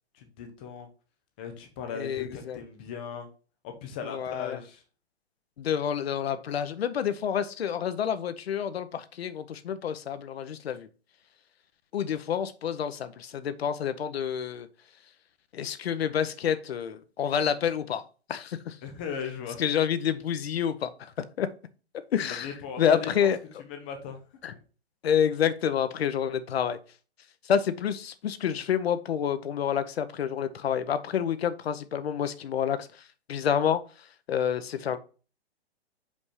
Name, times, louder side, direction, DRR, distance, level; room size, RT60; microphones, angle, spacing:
voice 1, 0.1-0.9 1.4-3.3 3.6-4.8 18.8-19.6 22.4-23.3 23.7-24.2, left 7 dB, 10° left, 0.3 m, -38 dB
voice 2, 1.9-2.6 4.0-4.6 5.6-10.9 11.9-14.7 15.5-18.0 18.3-18.8 19.6-21.5 22.1-23.4 24.4-24.5 25.0-26.8 27.4-35.0, left 8 dB, 65° left, 0.8 m, -28 dB
5.2 x 4.2 x 4.9 m
hypercardioid pair, 140°, 33 cm